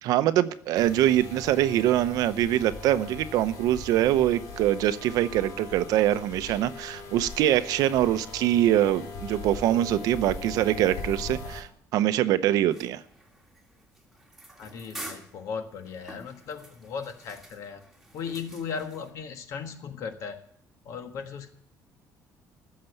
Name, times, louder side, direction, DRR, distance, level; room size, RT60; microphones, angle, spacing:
voice 1, 0.0-13.0, right 12 dB, 70° right, 0.7 m, -24 dB
sound 1, 0.8-11.6, left 4 dB, 85° left, 3.6 m, -40 dB
sound 2, 12.7-19.1, right 1 dB, 5° right, 1.7 m, -47 dB
voice 2, 14.6-17.8 18.1-20.4 20.8-21.5, left 6 dB, 55° left, 1.5 m, -37 dB
14.5 x 6.7 x 7.9 m
cardioid pair, 175°, 6 cm